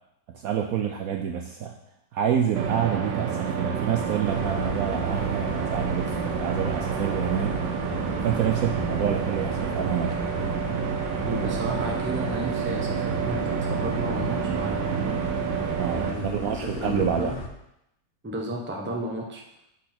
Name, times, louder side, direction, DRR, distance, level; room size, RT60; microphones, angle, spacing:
voice 1, 0.3-1.7 2.1-7.6 8.2-10.3 15.8-17.3, right 9 dB, 70° right, 3 dB, 0.9 m, -28 dB
sound 1, 2.5-16.1, right 7 dB, 85° right, 1.4 m, -28 dB
sound 2, 4.2-17.5, left 5 dB, 75° left, 0.5 m, -37 dB
voice 2, 11.2-15.2 15.9-17.4 18.2-19.4, right 1 dB, 10° right, 0 dB, 0.6 m, -33 dB
6.2 x 4.6 x 5.9 m, 0.83 s
omnidirectional pair, 1.9 m